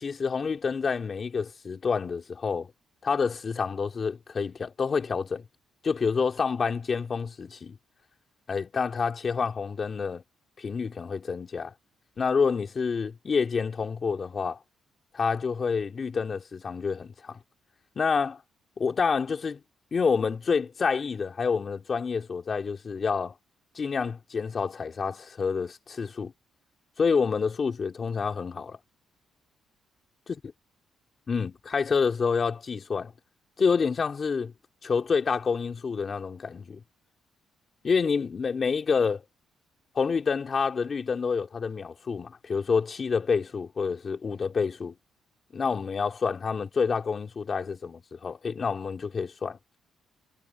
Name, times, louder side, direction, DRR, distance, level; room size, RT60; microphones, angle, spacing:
voice 1, 0.0-2.7 3.0-5.4 5.8-7.8 8.5-10.2 10.6-11.7 12.2-14.6 15.1-17.4 18.0-18.4 18.8-19.6 19.9-23.3 23.7-26.3 27.0-28.8 31.3-33.1 33.6-34.5 34.8-36.8 37.8-39.2 39.9-44.9 45.5-49.6, left 5 dB, 35° left, 3.0 m, -28 dB
cardioid pair, 125°, 0 cm